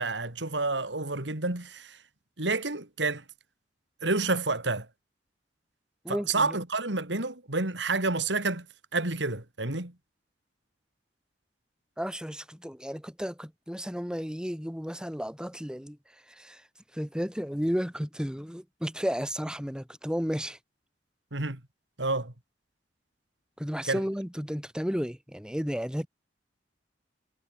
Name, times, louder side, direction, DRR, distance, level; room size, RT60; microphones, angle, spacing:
voice 1, 0.0-2.0 2.4-3.2 4.0-4.9 6.1-8.7 8.9-9.9 21.3-21.6 22.0-22.3 23.9-24.0, right 3 dB, 85° right, 3.4 m, -29 dB
voice 2, 6.0-6.6 12.0-16.0 16.4-16.6 16.9-20.6 23.6-26.1, equal, 5° right, 5.5 m, -33 dB
head